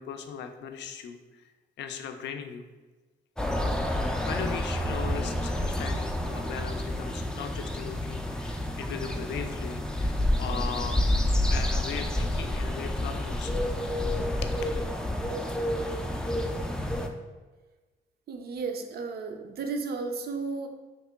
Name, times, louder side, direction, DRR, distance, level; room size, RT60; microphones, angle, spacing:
voice 1, 0.0-1.5 1.8-2.6 3.9-4.0 4.3-11.1 11.5-13.6 14.2-14.5, left 7 dB, 70° left, 6 dB, 0.4 m, -38 dB
sound 1, 3.4-17.1, left 1 dB, 5° left, 0.3 m, -29 dB
voice 2, 18.3-20.7, right 4 dB, 55° right, 5 dB, 0.5 m, -33 dB
3.0 x 2.9 x 3.4 m, 1.3 s
supercardioid pair, 65°, 19 cm